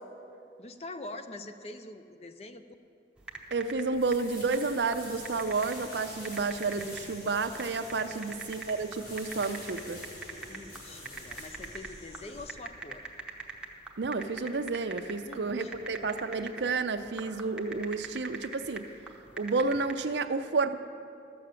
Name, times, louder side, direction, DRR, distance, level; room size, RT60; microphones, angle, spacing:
voice 1, 0.6-2.6 8.1-8.4 10.5-13.1 15.2-16.1, left 2 dB, 35° left, 8 dB, 0.5 m, -45 dB
sound 1, 3.2-19.9, right 4 dB, 5° right, 0.8 m, -43 dB
voice 2, 3.5-10.0 14.0-18.8 19.4-20.8, right 4 dB, 80° right, 9 dB, 0.6 m, -31 dB
sound 2, 3.9-12.4, left 1 dB, 50° left, 2.9 m, -48 dB
sound 3, 5.1-12.5, left 2 dB, 80° left, 2.1 m, -54 dB
12.5 x 6.9 x 7.5 m, 2.6 s
head